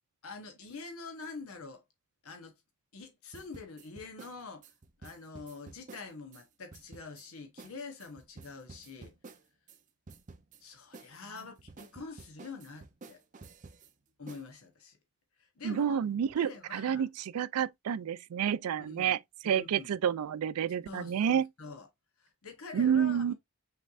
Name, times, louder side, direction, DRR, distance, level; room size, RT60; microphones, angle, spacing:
voice 1, 0.2-1.8 2.2-2.5 2.9-4.7 5.0-9.1 10.6-13.2 14.2-15.0 15.4-16.0 16.4-17.0 18.8-19.9 20.9-21.9 22.2-23.3, left 4 dB, 75° left, 1.1 m, -46 dB
sound 1, 3.3-6.4 6.7-7.3 7.6-7.7 8.0-9.8 10.1-10.6 10.9-13.9 14.3-14.5, right 3 dB, 35° right, 0.6 m, -51 dB
voice 2, 15.6-19.2 19.4-21.5 22.7-23.3, right 8 dB, 80° right, 0.3 m, -29 dB
5.7 x 3.2 x 2.4 m
head